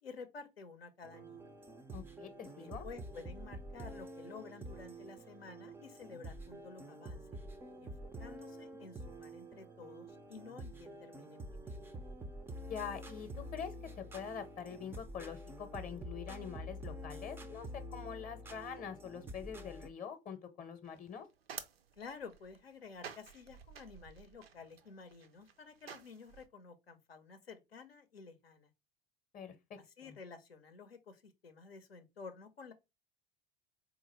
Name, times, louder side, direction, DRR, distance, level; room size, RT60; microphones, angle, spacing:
voice 1, 0.0-1.5 2.6-7.4 7.8-7.9 8.2-11.8 22.0-28.7 30.0-32.7, left 5 dB, 85° left, 0.6 m, -52 dB
sound 1, 1.0-19.9, equal, 10° right, 0.3 m, -48 dB
voice 2, 1.9-2.9 12.7-21.3 29.3-30.1, left 7 dB, 25° left, 0.7 m, -45 dB
sound 2, 20.8-26.5, right 7 dB, 80° right, 0.5 m, -52 dB
3.7 x 2.5 x 2.8 m
figure-of-eight pair, 75°, 30 cm